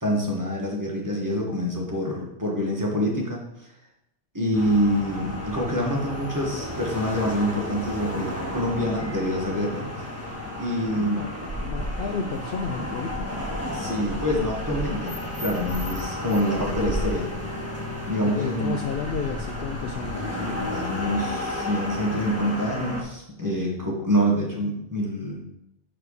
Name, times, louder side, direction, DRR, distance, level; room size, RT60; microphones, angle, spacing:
voice 1, 0.0-3.7 4.3-9.9 10.6-11.2 13.7-17.3 18.1-18.8 20.7-25.4, equal, 15° right, -3 dB, 1.8 m, -26 dB
sound 1, 4.5-23.0, left 1 dB, 10° left, 1.6 m, -32 dB
voice 2, 10.9-13.5 18.2-20.9, left 6 dB, 60° left, 4 dB, 0.7 m, -32 dB
7.5 x 4.8 x 4.9 m, 0.79 s
omnidirectional pair, 1.3 m